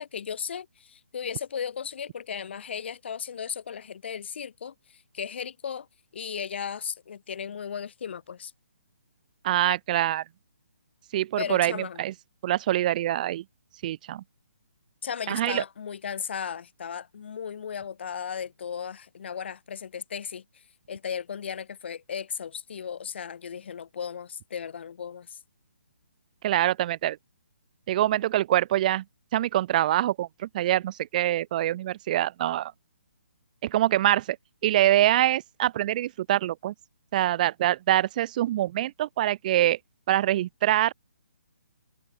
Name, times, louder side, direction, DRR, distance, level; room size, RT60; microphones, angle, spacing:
voice 1, 0.0-5.9 6.1-8.5 11.4-12.0 15.0-25.4, left 7 dB, 50° left, 7.3 m, -36 dB
voice 2, 9.4-10.2 11.1-12.1 12.4-13.4 13.8-14.2 15.3-15.6 26.4-27.2 27.9-29.0 29.3-32.7 33.6-34.4 34.6-36.7 37.1-39.8 40.1-40.9, right 13 dB, 35° right, 1.3 m, -24 dB
figure-of-eight pair, 140°, 8 cm